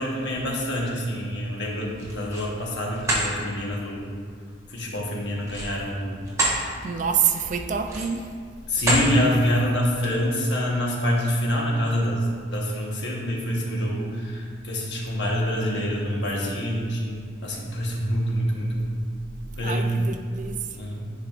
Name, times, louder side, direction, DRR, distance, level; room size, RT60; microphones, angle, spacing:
voice 1, 0.0-4.1 4.7-6.3 8.7-12.3 12.5-19.0 19.5-19.9 20.7-21.1, equal, 60° left, -3 dB, 1.2 m, -26 dB
sound 1, 1.9-2.5 2.9-3.3 5.4-6.6 7.0-7.2 7.8-8.3 8.7-9.1, right 1 dB, 15° right, 1.0 m, -26 dB
voice 2, 6.8-8.3 19.6-20.7, right 7 dB, 40° right, 6 dB, 0.4 m, -26 dB
10.5 x 4.7 x 2.5 m, 2.1 s
head